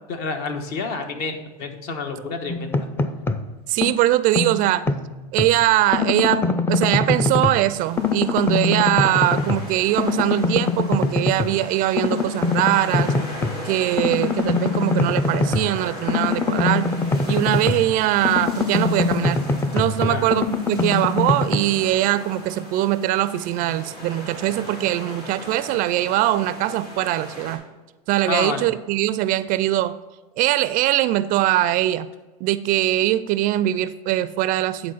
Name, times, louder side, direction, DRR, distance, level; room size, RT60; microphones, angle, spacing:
voice 1, 0.1-2.9 20.0-20.3 28.3-28.7, left 4 dB, 55° left, 5 dB, 1.3 m, -29 dB
sound 1, 2.5-3.5 3.8-5.6 5.9-7.7 8.0-9.7 10.0-11.6 12.0-13.6 14.0-17.9 18.2-21.6, left 3 dB, 10° left, 0.5 m, -23 dB
voice 2, 3.7-4.9 5.3-13.1 13.6-16.9 17.3-19.4 19.7-27.6 28.1-30.0 30.4-32.1 32.4-34.9, right 14 dB, 45° right, 16 dB, 0.4 m, -21 dB
sound 2, 7.7-27.6, equal, 90° left, 3.0 m, -38 dB
9.8 x 4.2 x 5.5 m, 1.2 s
hypercardioid pair, 105°, 20 cm